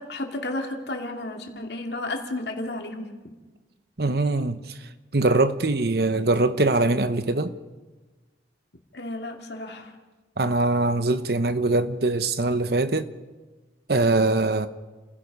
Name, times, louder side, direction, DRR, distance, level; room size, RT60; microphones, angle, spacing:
voice 1, 0.0-3.1 8.9-9.9, left 2 dB, 65° left, 2.7 m, -32 dB
voice 2, 4.0-4.7 5.1-7.6 10.4-13.1 13.9-14.7, right 2 dB, 55° right, 1.0 m, -22 dB
30.0 x 16.5 x 5.5 m
head